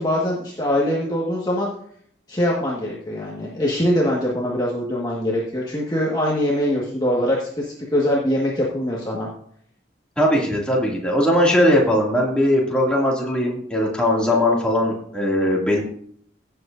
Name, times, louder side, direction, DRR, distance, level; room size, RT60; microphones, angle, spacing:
voice 1, 0.0-1.7 2.3-9.3, equal, 20° left, -4 dB, 1.6 m, -23 dB
voice 2, 10.2-15.8, left 1 dB, 5° left, -3 dB, 2.4 m, -19 dB
16.5 x 7.8 x 2.6 m, 0.62 s
head